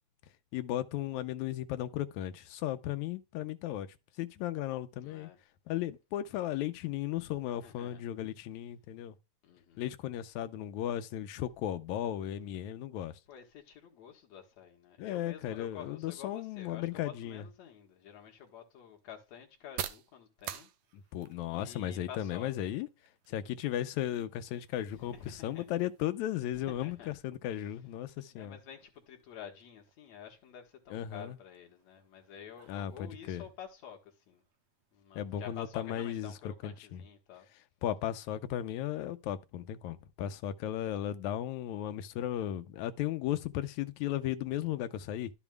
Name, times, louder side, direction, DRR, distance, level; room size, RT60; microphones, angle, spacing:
voice 1, 0.5-3.9 4.2-5.3 5.7-9.1 9.8-13.1 15.0-17.4 21.1-22.9 23.3-28.6 30.9-31.4 32.7-33.4 35.2-36.3 36.6-37.0 37.8-45.3, left 12 dB, 80° left, 1.9 m, -35 dB
voice 2, 5.0-5.4 7.2-7.3 7.6-8.0 9.4-9.9 13.3-20.7 21.5-22.5 24.9-25.7 26.5-27.2 28.3-34.4 34.9-37.5, left 8 dB, 65° left, 2.7 m, -50 dB
sound 1, 17.6-35.2, right 11 dB, 75° right, 2.0 m, -51 dB
12.0 x 7.0 x 2.3 m
omnidirectional pair, 3.5 m